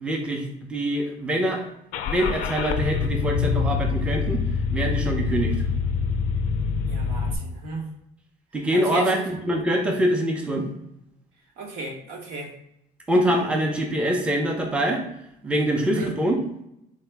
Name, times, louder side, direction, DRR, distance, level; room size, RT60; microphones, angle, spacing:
voice 1, 0.0-1.7 2.1-4.4 4.7-5.6 8.5-10.7 13.1-15.0 15.4-16.4, right 1 dB, 5° right, 1 dB, 0.6 m, -24 dB
Car / Engine starting, 1.9-7.3, left 5 dB, 65° left, 0.4 m, -25 dB
voice 2, 6.9-7.9 8.7-9.2 11.6-12.5 15.8-16.1, right 3 dB, 80° right, 0 dB, 1.1 m, -34 dB
4.0 x 2.7 x 3.4 m, 0.80 s
cardioid pair, 130°, 15 cm